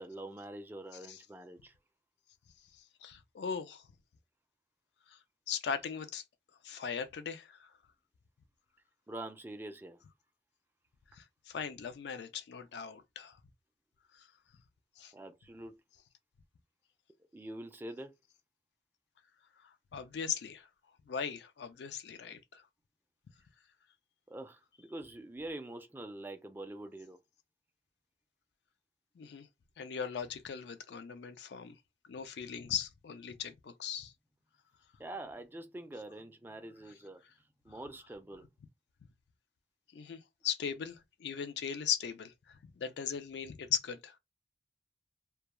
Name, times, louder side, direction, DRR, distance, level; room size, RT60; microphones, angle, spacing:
voice 1, 0.0-1.7 9.1-10.0 15.1-15.8 17.3-18.1 24.3-27.2 35.0-37.2 37.6-38.5, right 1 dB, 10° right, 0.3 m, -45 dB
voice 2, 2.7-3.9 5.1-5.2 5.5-6.2 6.6-7.7 11.1-13.4 14.1-14.3 15.0-15.1 19.6-20.7 21.1-22.6 29.2-29.5 29.8-31.7 32.1-34.1 39.9-44.2, left 7 dB, 70° left, 0.4 m, -39 dB
2.2 x 2.2 x 2.9 m
head